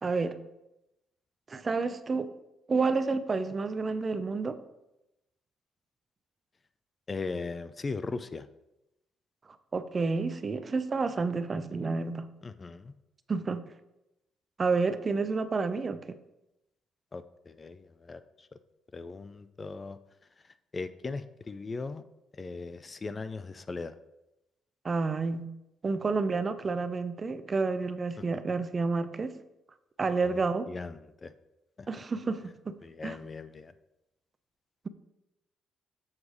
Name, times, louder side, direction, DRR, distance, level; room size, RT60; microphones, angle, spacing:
voice 1, 0.0-0.4 1.5-2.3 2.7-4.6 9.7-12.3 13.3-13.7 14.6-16.2 24.8-25.5 25.8-29.4 30.0-30.7 31.9-32.8 33.0-33.2, right 4 dB, 35° right, 11 dB, 0.5 m, -30 dB
voice 2, 7.1-8.5 12.4-12.9 17.1-18.5 18.9-20.0 20.7-22.0 22.3-24.0 28.2-28.3 30.2-30.4 30.7-31.3 31.8-31.9 32.8-33.7, left 4 dB, 30° left, 12 dB, 0.4 m, -38 dB
7.2 x 3.3 x 6.0 m, 0.92 s
cardioid pair, 90°, 0 cm